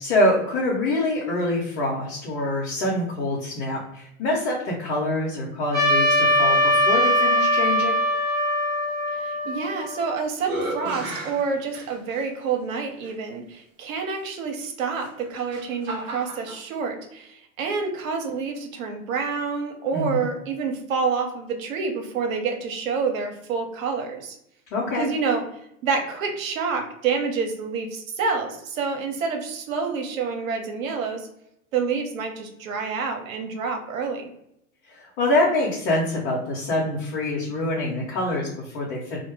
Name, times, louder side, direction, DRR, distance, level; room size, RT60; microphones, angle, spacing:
voice 1, 0.0-8.0 19.9-20.3 24.7-25.1 34.9-39.2, left 1 dB, 50° left, -4 dB, 0.8 m, -25 dB
Trumpet, 5.7-10.2, equal, 10° left, 0.9 m, -21 dB
voice 2, 9.1-24.4 24.9-25.4 25.8-31.3 31.7-34.3, right 5 dB, 70° right, 3 dB, 0.8 m, -28 dB
sound 1, 9.6-10.0 10.4-12.3 13.0-13.1 14.9-16.6, right 2 dB, 25° right, 0.6 m, -34 dB
2.2 x 2.1 x 3.1 m, 0.75 s
hypercardioid pair, 100°, 42 cm